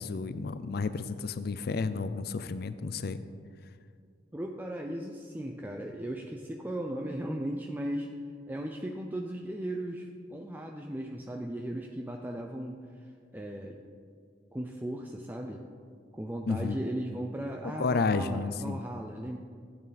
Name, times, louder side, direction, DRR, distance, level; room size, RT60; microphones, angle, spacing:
voice 1, 0.0-3.2 16.5-16.8 17.6-18.9, left 4 dB, 55° left, 12 dB, 0.4 m, -31 dB
voice 2, 4.3-8.1 8.5-13.1 13.3-13.8 14.5-15.6 16.1-19.4, right 1 dB, 10° right, 2 dB, 0.5 m, -37 dB
14.5 x 8.9 x 4.1 m, 2.1 s
head